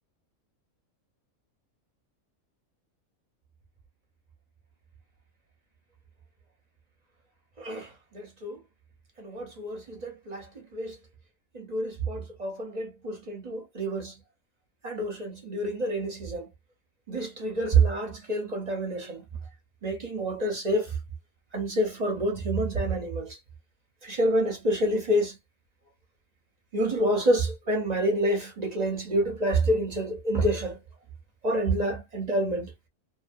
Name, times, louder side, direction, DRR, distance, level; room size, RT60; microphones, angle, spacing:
voice 1, 7.6-8.6 9.2-11.0 11.5-14.1 14.8-16.5 17.1-19.2 19.8-20.9 21.5-23.3 24.0-25.4 26.7-30.8 31.4-32.7, right 1 dB, 35° right, 0.8 m, -28 dB
2.7 x 2.1 x 2.5 m
omnidirectional pair, 1.4 m